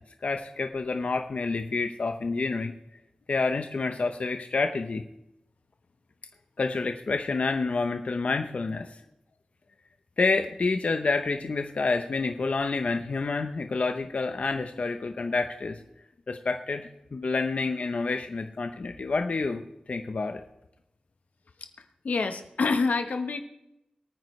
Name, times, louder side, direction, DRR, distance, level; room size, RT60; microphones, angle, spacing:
voice 1, 0.2-2.7 3.3-5.0 6.6-8.9 10.2-15.8 16.3-19.6 19.9-20.4, left 3 dB, 60° left, 6 dB, 0.8 m, -28 dB
voice 2, 22.0-23.4, left 4 dB, 85° left, 7 dB, 1.1 m, -26 dB
23.5 x 9.3 x 3.2 m, 0.84 s
wide cardioid pair, 100°, 3 cm